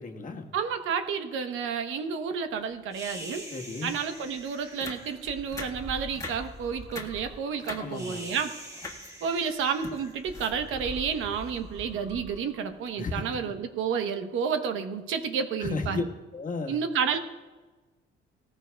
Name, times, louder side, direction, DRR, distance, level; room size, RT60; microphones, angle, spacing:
voice 1, 0.0-0.5 3.5-3.9 7.8-8.3 13.0-13.5 15.6-16.0 16.3-16.8, left 3 dB, 40° left, 2 dB, 1.4 m, -34 dB
voice 2, 0.5-3.5 3.8-8.6 9.2-16.0 16.7-17.2, right 6 dB, 85° right, 7 dB, 1.0 m, -30 dB
sound 1, 2.9-13.3, right 1 dB, 15° right, 1.7 m, -44 dB
sound 2, 4.2-4.3 4.8-5.2 5.5-5.9 6.2-6.5 6.8-7.2 7.6-8.2 8.7-9.2 9.5-10.9 11.4-11.6 11.8-12.0, left 2 dB, 15° left, 1.6 m, -41 dB
18.0 x 14.5 x 2.3 m, 1.2 s
cardioid pair, 90°, 20 cm